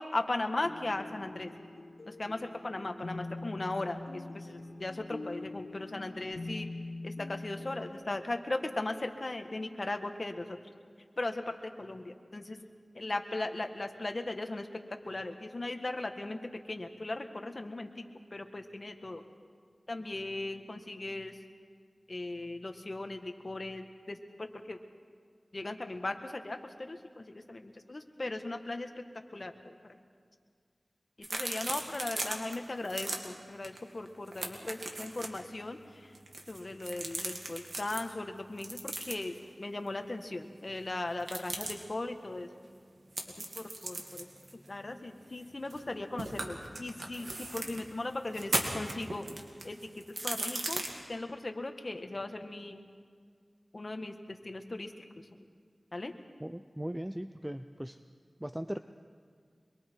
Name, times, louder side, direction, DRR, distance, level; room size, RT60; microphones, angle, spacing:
voice 1, 0.0-1.5 2.1-6.7 7.0-10.6 11.2-12.6 12.9-14.7 15.0-16.4 16.7-18.0 18.3-19.2 19.9-21.3 22.1-24.8 25.5-29.0 29.3-30.0 31.2-36.1 36.5-42.5 43.5-44.3 44.7-49.2 49.6-52.8 53.7-54.9 55.9-56.2, left 2 dB, 55° left, 6 dB, 1.6 m, -38 dB
sound 1, 0.6-7.9, left 2 dB, 85° left, 1.6 m, -43 dB
sound 2, 31.2-32.5 32.8-33.2 33.6-33.8 34.1-35.4 36.1-38.0 38.6-39.4 41.2-41.7 43.1-45.9 46.2-47.8 48.3-50.9, right 2 dB, 80° right, 2.3 m, -37 dB
voice 2, 56.4-58.0 58.4-58.8, equal, 15° right, 9 dB, 0.6 m, -38 dB
25.0 x 22.5 x 4.6 m, 2.1 s
wide cardioid pair, 45°, 0 cm